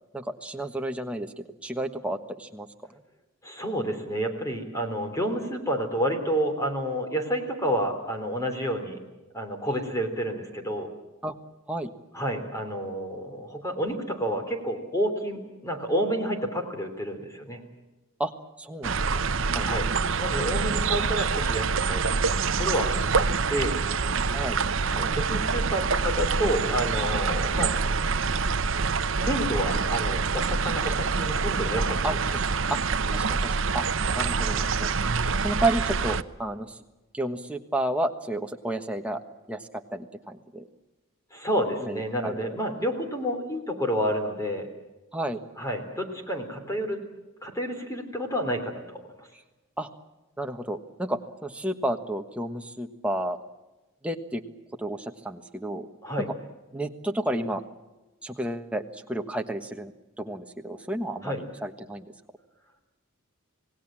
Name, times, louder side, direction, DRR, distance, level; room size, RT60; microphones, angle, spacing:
voice 1, 0.1-2.7 11.2-11.3 11.7-11.9 18.2-18.3 18.6-19.2 19.5-19.7 24.3-24.6 32.0-32.4 32.7-32.8 33.1-33.8 34.2-34.9 35.4-36.8 37.1-39.2 39.5-40.7 41.8-42.3 45.1-45.4 49.8-49.9 50.4-53.4 54.0-54.4 54.8-55.9 56.7-57.6 58.2-59.9 60.2-62.1, right 1 dB, 5° right, 4 dB, 1.3 m, -31 dB
voice 2, 3.4-9.0 9.3-10.9 12.1-17.6 19.6-19.9 20.2-23.8 24.9-27.7 29.1-32.0 41.3-44.7 45.6-47.0 47.4-49.3 56.0-56.3 61.2-61.4, equal, 15° left, 4 dB, 3.4 m, -29 dB
sound 1, 18.8-36.2, right 4 dB, 60° right, 0.8 m, -26 dB
27.5 x 18.5 x 7.5 m, 1.1 s
head